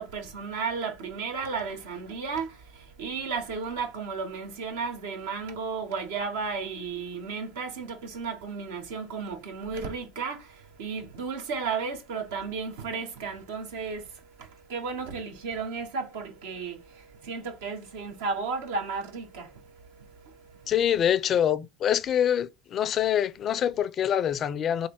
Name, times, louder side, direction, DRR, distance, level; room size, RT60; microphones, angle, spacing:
voice 1, 0.0-20.7, right 5 dB, 75° right, 0.9 m, -34 dB
voice 2, 20.7-24.9, left 9 dB, 45° left, 0.4 m, -25 dB
3.2 x 2.7 x 4.5 m
hypercardioid pair, 70°, 0 cm